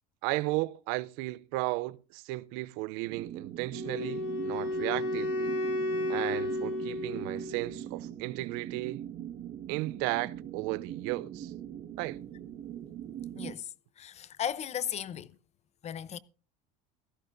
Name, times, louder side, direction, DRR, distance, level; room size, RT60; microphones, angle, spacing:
voice 1, 0.2-5.5 6.1-9.0 9.7-11.5 12.0-12.2, right 21 dB, 70° right, 0.6 m, -34 dB
sound 1, 3.0-13.5, right 10 dB, 45° right, 1.6 m, -42 dB
Wind instrument woodwind instrument, 3.7-7.8, left 1 dB, 60° left, 6.1 m, -33 dB
voice 2, 14.0-15.3 15.8-16.2, left 9 dB, 30° left, 0.7 m, -35 dB
16.5 x 14.0 x 2.6 m
supercardioid pair, 120°, 21 cm